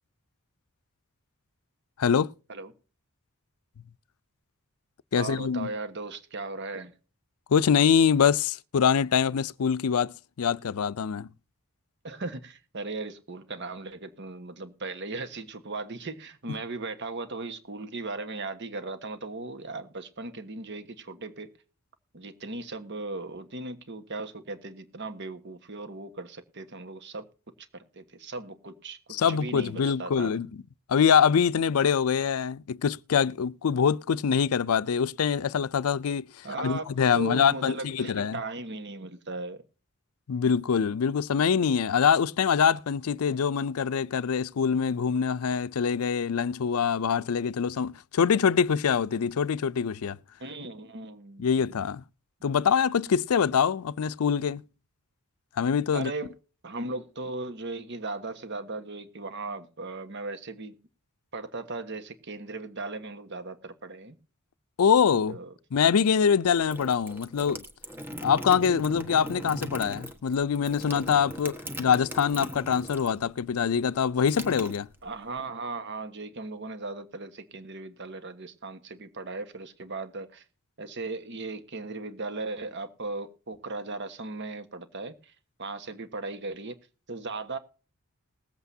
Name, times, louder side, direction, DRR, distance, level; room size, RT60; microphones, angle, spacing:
voice 1, 2.0-2.3 5.1-5.7 7.5-11.3 29.1-30.5 30.9-38.4 40.3-50.2 51.4-52.0 52.4-54.6 55.6-56.1 64.8-65.4 65.7-67.6 68.2-74.9, left 7 dB, 85° left, 0.5 m, -24 dB
voice 2, 5.2-6.9 12.0-21.5 22.1-27.3 27.6-30.3 36.4-39.6 50.4-51.8 55.9-56.3 56.6-60.8 61.3-64.2 65.3-65.5 75.0-80.4 80.8-86.8 87.1-87.6, right 3 dB, 55° right, 1.3 m, -37 dB
sound 1, 66.4-73.2 73.5-75.4, equal, 10° right, 1.3 m, -39 dB
20.0 x 8.1 x 2.7 m
head